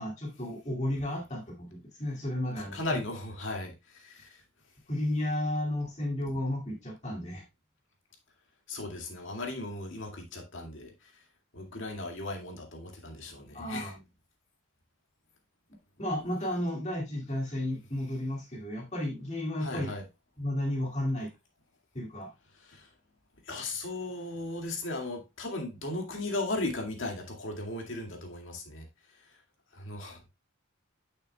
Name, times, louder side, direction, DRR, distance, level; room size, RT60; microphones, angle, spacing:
voice 1, 0.0-3.0 4.9-7.4 13.5-14.0 16.0-19.9 20.4-21.4 21.9-22.3, left 1 dB, 35° left, 2.1 m, -33 dB
voice 2, 2.6-4.4 8.7-11.2 11.5-13.9 19.6-20.1 22.6-22.9 23.4-29.4 29.7-30.2, left 2 dB, 65° left, 2.1 m, -37 dB
9.2 x 6.6 x 2.2 m
head